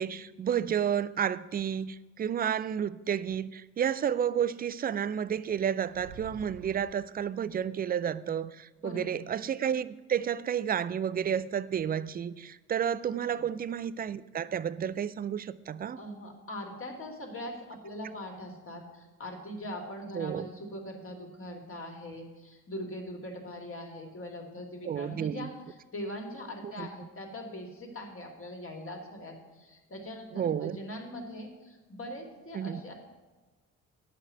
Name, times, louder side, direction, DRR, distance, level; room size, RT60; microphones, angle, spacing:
voice 1, 0.0-16.0 20.1-20.5 24.8-25.5 26.6-26.9 30.3-30.8 32.5-32.8, right 8 dB, 25° right, 0.4 m, -31 dB
sound 1, 5.8-7.5, right 6 dB, 75° right, 0.8 m, -49 dB
voice 2, 16.0-32.9, left 1 dB, 35° left, 2.6 m, -41 dB
9.6 x 5.8 x 7.6 m
figure-of-eight pair, 45°, 39 cm